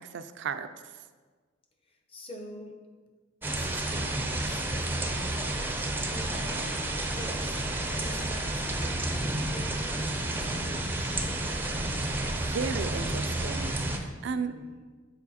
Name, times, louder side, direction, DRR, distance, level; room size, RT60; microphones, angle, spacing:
voice 1, 0.1-0.7 12.4-14.5, right 5 dB, 60° right, 10 dB, 0.4 m, -34 dB
voice 2, 1.8-2.8 3.4-6.9 7.2-11.5 14.3-14.8, left 1 dB, 25° left, 2 dB, 0.8 m, -47 dB
sound 1, 3.4-14.0, right 1 dB, 10° right, 0.5 m, -31 dB
7.3 x 4.8 x 4.1 m, 1.4 s
head